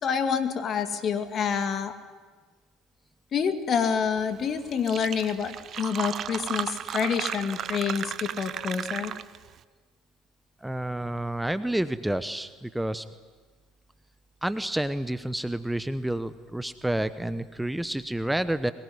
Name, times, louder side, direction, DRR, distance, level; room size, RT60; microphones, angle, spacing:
voice 1, 0.0-1.9 3.3-9.1, left 6 dB, 45° left, 7 dB, 2.4 m, -27 dB
Fill (with liquid), 4.4-4.5 4.7-9.5, right 9 dB, 50° right, 0.8 m, -34 dB
voice 2, 10.6-13.0 14.4-18.7, right 1 dB, 5° right, 12 dB, 1.0 m, -29 dB
23.0 x 20.5 x 9.7 m, 1.5 s
hypercardioid pair, 65°, 0 cm